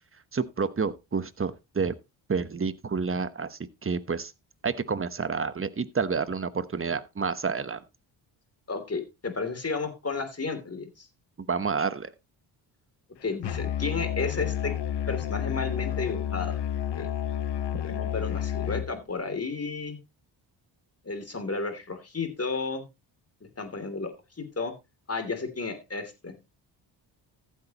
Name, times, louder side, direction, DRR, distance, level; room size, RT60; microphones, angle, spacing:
voice 1, 0.3-1.9 2.3-4.3 4.6-7.8 11.4-12.1, right 5 dB, 25° right, 1.1 m, -29 dB
voice 2, 8.7-11.1 13.2-14.7 15.1-16.6 17.0-17.1 17.7-20.0 21.0-22.9 23.6-24.7 25.1-26.3, left 4 dB, 30° left, 3.1 m, -32 dB
Musical instrument, 13.4-18.9, left 10 dB, 60° left, 1.2 m, -30 dB
14.5 x 8.4 x 3.0 m
cardioid pair, 70°, 48 cm